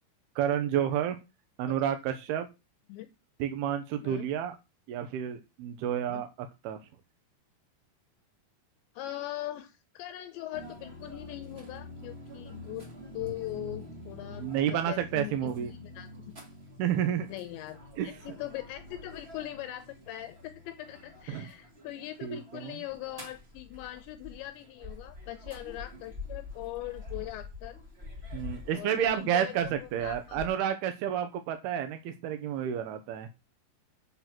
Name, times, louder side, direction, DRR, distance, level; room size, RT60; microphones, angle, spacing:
voice 1, 0.4-1.2 1.6-2.5 3.4-4.6 4.9-6.3 6.6-6.8 14.4-15.7 16.8-17.3 18.0-18.1 21.3-21.5 22.2-22.7 28.3-33.3, right 9 dB, 75° right, 7 dB, 2.4 m, -30 dB
voice 2, 8.9-12.9 13.1-16.1 17.3-27.8 28.7-30.4, left 14 dB, 80° left, 11 dB, 2.8 m, -41 dB
sound 1, 10.5-30.5, left 2 dB, 50° right, 0.7 m, -46 dB
8.1 x 5.9 x 7.5 m, 0.26 s
omnidirectional pair, 5.4 m